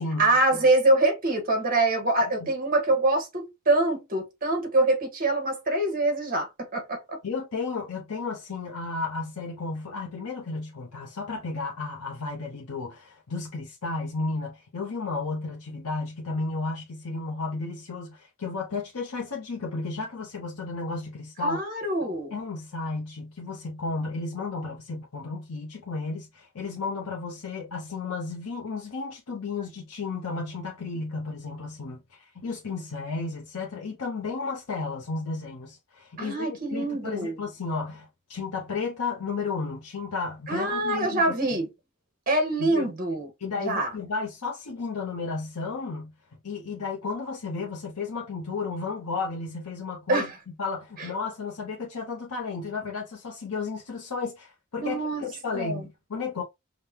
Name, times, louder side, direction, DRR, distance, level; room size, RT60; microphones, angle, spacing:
voice 1, 0.2-7.2 21.4-22.3 36.2-37.4 40.5-41.7 42.3-43.3 43.6-43.9 50.1-50.3 51.0-51.1 54.8-55.2 55.5-55.8, right 2 dB, 40° right, 1.5 m, -24 dB
voice 2, 7.2-21.6 22.3-41.3 42.6-42.9 43.4-46.1 46.4-56.4, left 4 dB, 80° left, 0.9 m, -33 dB
5.2 x 2.3 x 2.8 m
head